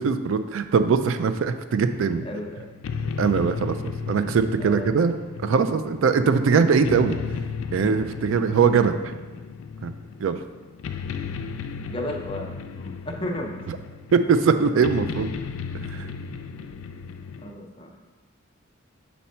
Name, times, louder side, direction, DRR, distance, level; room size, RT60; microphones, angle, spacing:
voice 1, 0.0-2.3 3.2-3.8 4.1-5.2 5.4-7.2 7.7-9.0 9.8-9.9 10.2-10.4 14.1-15.3 15.9-16.0, right 5 dB, 70° right, 9 dB, 0.4 m, -21 dB
sound 1, 1.9-17.5, left 5 dB, 75° left, 0.3 m, -35 dB
voice 2, 2.2-2.7 4.6-5.0 11.9-13.6 17.4-17.9, left 1 dB, 25° left, 1 dB, 0.6 m, -34 dB
5.6 x 4.2 x 4.2 m, 1.3 s
head